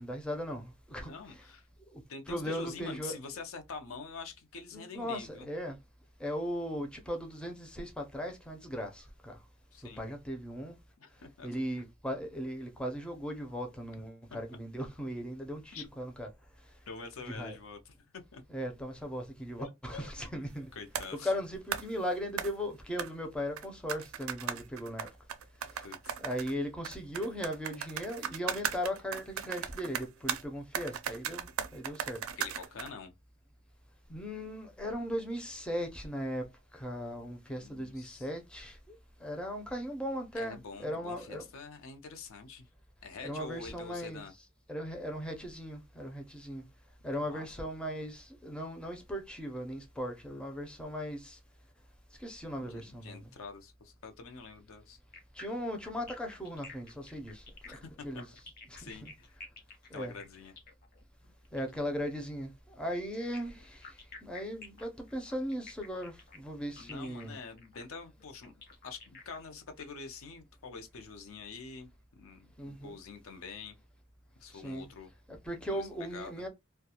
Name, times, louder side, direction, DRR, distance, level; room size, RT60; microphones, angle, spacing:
voice 1, 0.0-1.4 1.9-2.0 2.3-3.2 4.7-5.8 6.2-9.4 9.8-10.8 11.4-16.3 17.2-17.6 18.5-20.7 21.2-25.1 25.7-25.9 26.2-32.2 34.1-36.5 36.7-38.9 39.2-41.4 43.2-44.2 44.7-46.6 47.0-51.4 52.2-53.3 55.4-57.8 58.0-58.3 58.8-59.1 59.9-60.1 61.5-67.3 72.6-73.0 74.5-74.9 75.3-76.5, equal, 5° left, 0.4 m, -38 dB
voice 2, 1.0-1.7 2.1-5.5 9.7-10.0 11.0-11.5 15.7-15.8 16.9-18.4 19.6-20.1 20.7-21.3 25.8-26.2 32.4-33.1 37.5-38.3 40.3-42.7 43.0-44.3 47.0-47.5 52.6-55.0 57.7-58.2 58.8-59.5 59.9-60.5 66.8-73.8 74.4-75.1 75.6-76.4, left 5 dB, 80° left, 0.5 m, -46 dB
sound 1, 20.9-21.1 21.7-21.9 22.4-22.5 23.0-23.1 23.6-26.5 26.8-30.4 30.7-32.9, right 8 dB, 85° right, 0.4 m, -37 dB
sound 2, 55.1-61.9 63.1-69.8, left 4 dB, 45° left, 0.7 m, -51 dB
2.3 x 2.2 x 2.7 m
head